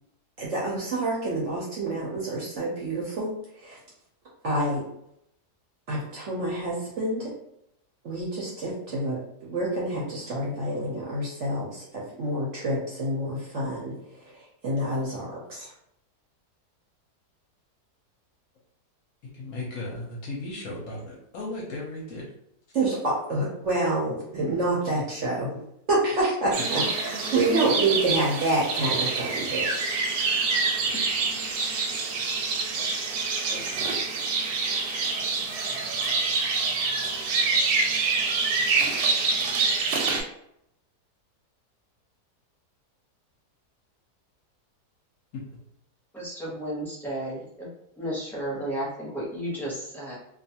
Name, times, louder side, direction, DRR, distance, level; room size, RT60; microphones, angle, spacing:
voice 1, 0.4-3.3 3.6-3.8 4.4-4.8 5.9-7.3 8.0-9.2 9.5-13.9 14.6-15.7 22.7-25.5 25.9-29.7, right 2 dB, 60° right, -5 dB, 0.8 m, -27 dB
voice 2, 19.3-22.3 45.3-45.4, left 2 dB, 65° left, -3 dB, 0.9 m, -36 dB
sound 1, 26.5-40.2, right 4 dB, 85° right, 1.2 m, -26 dB
voice 3, 32.8-33.6 34.0-34.1 46.1-47.7 48.0-50.2, right 1 dB, ahead, -7 dB, 0.6 m, -34 dB
2.5 x 2.4 x 2.7 m, 0.77 s
omnidirectional pair, 1.7 m